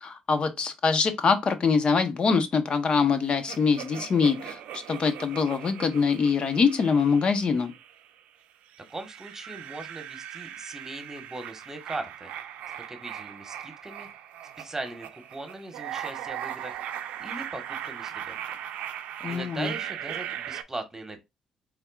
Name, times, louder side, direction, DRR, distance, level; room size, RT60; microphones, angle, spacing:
voice 1, 0.0-7.7 19.2-19.7, left 5 dB, 50° left, 0.9 m, -24 dB
monster insane laugh, 3.5-8.2 8.7-20.6, right 10 dB, 85° right, 0.5 m, -39 dB
voice 2, 8.9-12.3 12.7-14.1 14.6-16.8 17.2-18.4 19.2-21.2, right 2 dB, 20° right, 1.3 m, -39 dB
4.2 x 3.7 x 2.4 m
cardioid pair, 75°, 2 cm